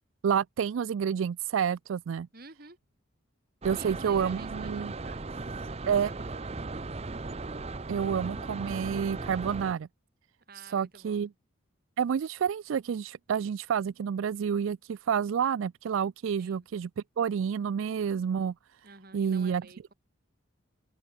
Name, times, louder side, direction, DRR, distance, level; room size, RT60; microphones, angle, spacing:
voice 1, 0.2-2.3 3.6-4.9 5.9-6.1 7.9-9.9 10.6-11.3 12.0-16.9 17.2-18.5 19.1-19.6, right 7 dB, 70° right, 0.3 m, -29 dB
voice 2, 2.3-2.8 3.7-6.5 10.5-11.3 16.4-16.7 18.8-19.9, right 3 dB, 45° right, 2.9 m, -51 dB
sound 1, 3.6-9.7, right 3 dB, 30° right, 0.6 m, -37 dB
open air
head